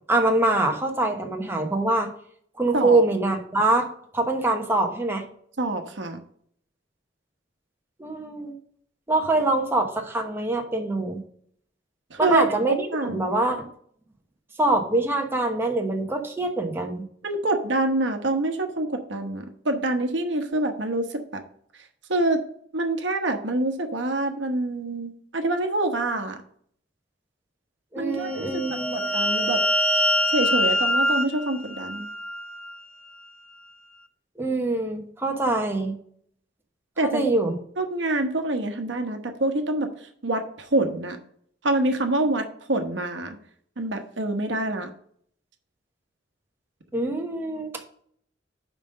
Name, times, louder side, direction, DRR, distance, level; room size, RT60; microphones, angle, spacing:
voice 1, 0.1-2.1 2.6-3.9 4.1-5.2 8.0-8.5 9.1-11.2 12.2-13.7 14.6-17.0 27.9-29.0 34.4-35.9 37.0-37.6 46.9-47.7, right 2 dB, 15° right, 2 dB, 1.0 m, -24 dB
voice 2, 5.6-6.2 12.1-13.2 17.2-21.4 22.1-22.4 22.7-26.4 28.0-28.6 28.9-29.6 30.3-32.1 37.0-37.2 37.8-41.2 41.6-43.4 43.8-44.9, right 2 dB, 70° right, 5 dB, 1.1 m, -26 dB
sound 1, 28.3-32.8, left 1 dB, 5° left, 0.4 m, -24 dB
5.8 x 5.1 x 6.4 m, 0.62 s
head